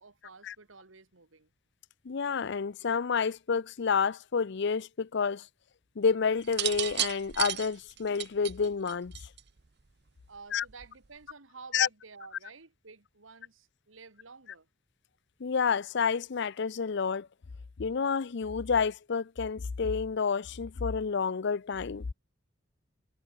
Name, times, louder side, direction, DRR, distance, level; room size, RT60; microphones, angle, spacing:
voice 1, 0.0-1.5 10.3-14.7, right 4 dB, 85° right, 1.9 m, -51 dB
voice 2, 2.0-5.5 6.0-9.1 10.5-10.6 11.7-11.9 15.4-17.3 17.8-22.0, left 5 dB, 60° left, 0.5 m, -29 dB
sound 1, 6.4-9.6 10.7-11.1, right 13 dB, 60° right, 0.9 m, -33 dB
head